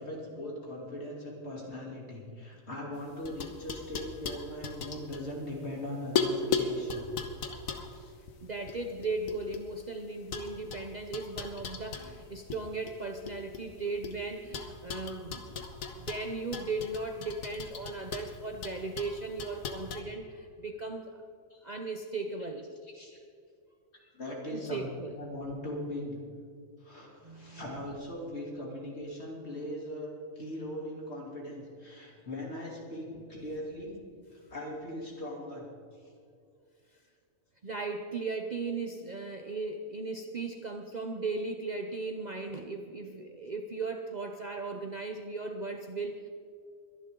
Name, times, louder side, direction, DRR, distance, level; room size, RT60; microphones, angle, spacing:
voice 1, 0.0-7.1 7.9-8.1 21.5-21.7 22.9-23.2 24.1-24.9 25.2-26.2 26.8-34.0 34.3-35.7 35.9-36.1, left 1 dB, 50° left, -3 dB, 3.4 m, -40 dB
sound 1, 3.0-5.8 6.2-9.8 10.3-12.6 12.9-14.2 14.5-20.0, left 5 dB, 80° left, 1.5 m, -37 dB
voice 2, 8.4-15.6 16.0-21.2 21.6-22.7 24.5-25.1 27.2-27.7 37.6-46.3, right 3 dB, 40° right, 4 dB, 0.8 m, -37 dB
23.0 x 11.0 x 3.8 m, 2.3 s
omnidirectional pair, 1.4 m